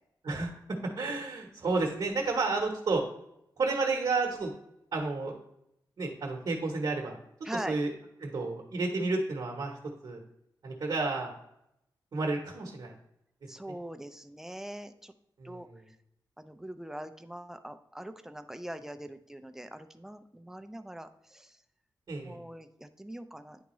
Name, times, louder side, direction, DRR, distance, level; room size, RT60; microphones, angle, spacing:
voice 1, 0.2-0.6 0.9-3.0 3.6-4.5 4.9-5.3 6.0-7.2 7.7-7.9 8.2-9.7 10.0-10.2 10.6-11.3 12.1-12.9 15.4-15.8 22.1-22.4, right 3 dB, 55° right, 0 dB, 0.9 m, -31 dB
voice 2, 7.4-7.8 13.5-15.1 15.4-16.0 16.4-21.6 22.2-23.6, right 1 dB, 5° right, 8 dB, 0.4 m, -42 dB
9.4 x 3.5 x 3.0 m, 0.81 s
wide cardioid pair, 155°, 8 cm